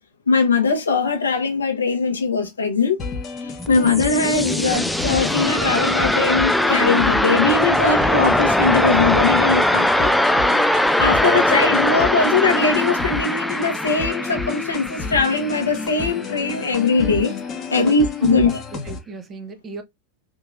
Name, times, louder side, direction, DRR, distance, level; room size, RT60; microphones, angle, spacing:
voice 1, 0.3-3.0 3.7-10.1 11.0-17.3 17.7-18.6, left 4 dB, 75° left, 0.9 m, -20 dB
sound 1, 3.0-19.0, left 5 dB, 30° left, 0.9 m, -31 dB
sound 2, 3.4-16.3, left 1 dB, ahead, 0.3 m, -21 dB
voice 2, 18.2-19.8, right 3 dB, 20° right, 0.7 m, -30 dB
3.6 x 2.9 x 2.6 m
figure-of-eight pair, 90°, 0 cm